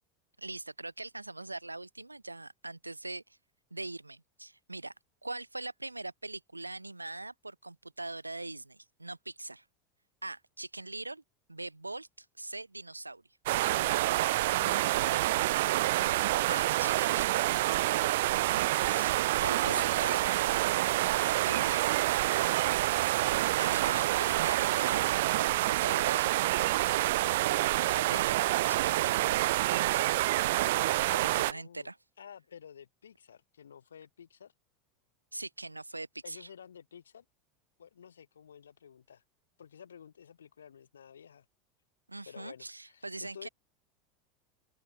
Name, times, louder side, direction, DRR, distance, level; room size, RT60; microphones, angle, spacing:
voice 1, 0.4-3.2 3.7-4.9 5.2-9.6 10.2-11.2 11.5-13.2 16.0-17.5 18.5-18.6 18.9-20.2 21.5-21.8 23.6-25.1 25.4-26.6 27.8-29.3 29.7-30.0 31.1-32.0 35.3-36.5 42.1-43.5, right 2 dB, 90° right, 1.8 m, -42 dB
sound 1, 13.5-31.5, right 17 dB, 60° right, 0.3 m, -27 dB
voice 2, 14.6-15.3 19.6-20.6 31.3-31.9 32.2-34.5 36.2-37.2 37.8-39.2 39.6-41.4 42.3-43.5, left 8 dB, 75° left, 1.6 m, -51 dB
open air
figure-of-eight pair, 80°, 0 cm